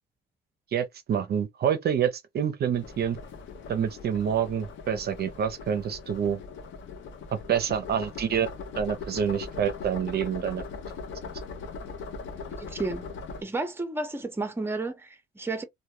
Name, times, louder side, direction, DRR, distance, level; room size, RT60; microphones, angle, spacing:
voice 1, 0.7-3.2 3.7-6.4 7.5-8.5 8.8-10.6, right 8 dB, 55° right, 0.5 m, -27 dB
sound 1, 2.7-13.4, left 4 dB, 70° left, 0.6 m, -40 dB
voice 2, 12.6-13.1 13.4-15.6, right 3 dB, 10° right, 0.6 m, -32 dB
2.1 x 2.1 x 2.9 m
cardioid pair, 90°, 20 cm